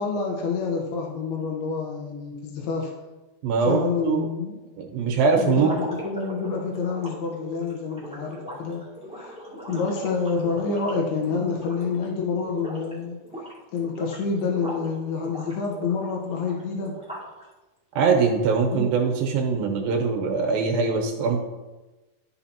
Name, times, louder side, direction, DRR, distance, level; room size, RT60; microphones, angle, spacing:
voice 1, 0.0-2.9 3.7-4.6 5.4-8.8 9.2-9.3 9.7-13.2 13.7-17.0 18.7-18.8, left 5 dB, 85° left, 0 dB, 2.9 m, -28 dB
voice 2, 3.4-4.3 4.8-5.7 18.0-21.4, right 5 dB, 75° right, 1 dB, 2.6 m, -22 dB
sound 1, 5.5-12.1 12.4-12.9 13.2-14.9 15.2-17.4, equal, 5° right, 0.5 m, -39 dB
12.5 x 5.6 x 2.9 m, 1.1 s
omnidirectional pair, 4.5 m